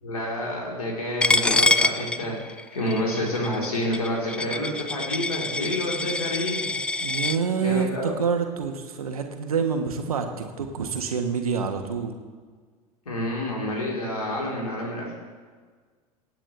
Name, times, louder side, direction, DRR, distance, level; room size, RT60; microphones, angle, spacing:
voice 1, 0.0-6.7 7.6-8.2 13.1-15.2, left 1 dB, 75° left, -3 dB, 4.0 m, -29 dB
Coin (dropping), 1.2-7.4, left 2 dB, 5° left, 0.4 m, -25 dB
voice 2, 7.0-12.1, right 6 dB, 70° right, 5 dB, 1.5 m, -27 dB
25.5 x 9.0 x 3.4 m, 1.5 s
figure-of-eight pair, 75°, 19 cm